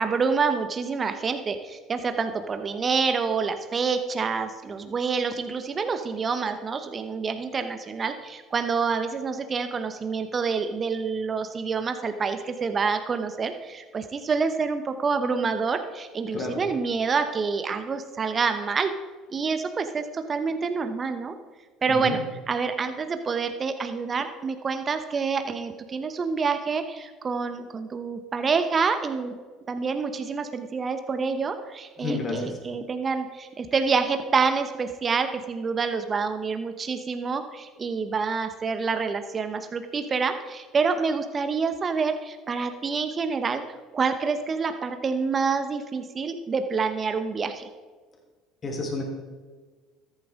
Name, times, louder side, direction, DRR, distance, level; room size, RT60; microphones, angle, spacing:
voice 1, 0.0-18.9 19.3-21.3 21.8-22.2 22.5-29.3 29.7-43.6 43.9-47.7, right 5 dB, 35° right, 8 dB, 1.0 m, -27 dB
voice 2, 21.9-22.2 32.0-32.6 48.6-49.0, left 3 dB, 35° left, 1 dB, 3.6 m, -30 dB
14.0 x 11.0 x 3.7 m, 1.4 s
hypercardioid pair, 65°, 0 cm